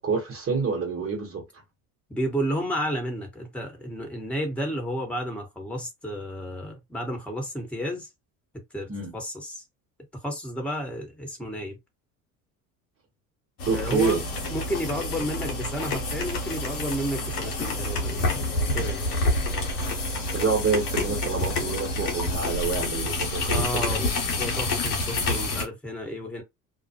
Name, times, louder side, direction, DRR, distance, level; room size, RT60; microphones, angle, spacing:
voice 1, 0.0-1.4 8.9-9.1 13.7-14.2 20.3-24.0, right 5 dB, 30° right, 1.1 m, -27 dB
voice 2, 2.1-8.1 8.7-9.6 10.2-11.8 13.7-14.2 14.5-18.4 18.7-19.1 23.5-24.1 24.4-26.4, equal, 5° left, 1.2 m, -32 dB
sound 1, 13.6-25.6, left 2 dB, 85° left, 0.9 m, -28 dB
2.3 x 2.1 x 2.8 m
hypercardioid pair, 65°, 45 cm